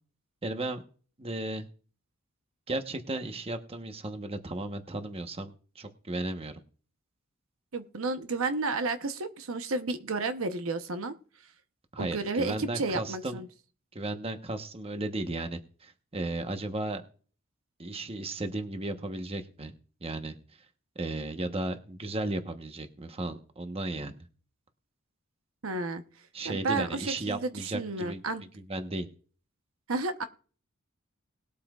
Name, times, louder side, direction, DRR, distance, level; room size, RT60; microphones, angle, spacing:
voice 1, 0.4-0.8 1.2-1.7 2.7-6.6 11.9-13.4 13.9-17.0 17.8-19.7 20.0-20.4 20.9-24.3 26.3-28.2 28.7-29.1, right 2 dB, 30° right, 7 dB, 1.0 m, -35 dB
voice 2, 7.7-11.1 12.0-13.5 25.6-26.0 26.4-28.4 29.9-30.2, right 3 dB, 75° right, 8 dB, 0.9 m, -32 dB
20.0 x 8.4 x 2.4 m, 0.41 s
head